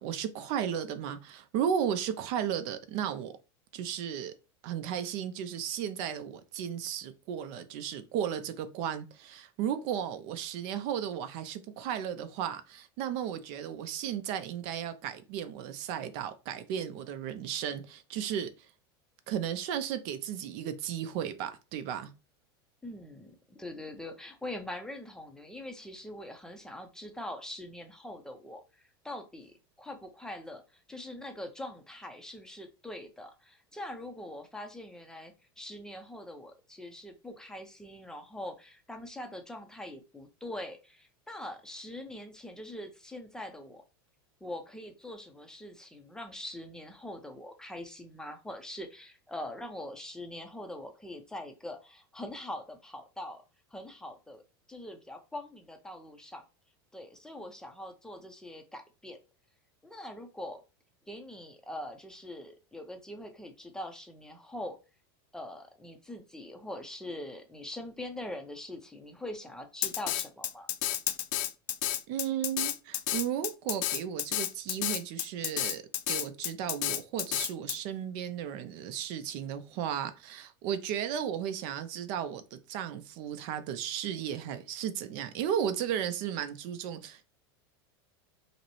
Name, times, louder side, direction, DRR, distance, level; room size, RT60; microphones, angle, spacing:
voice 1, 0.0-3.3 3.7-4.3 4.6-18.5 19.3-22.1 72.1-87.3, right 9 dB, 50° right, 0.5 m, -34 dB
voice 2, 22.8-43.8 44.4-53.4 53.7-54.4 54.7-56.4 56.9-59.2 59.8-60.6 61.1-64.8 65.3-70.7, left 1 dB, 5° left, 0.5 m, -43 dB
Drum kit, 69.8-77.8, left 14 dB, 60° left, 0.4 m, -31 dB
5.1 x 2.0 x 3.0 m
supercardioid pair, 140°, 13 cm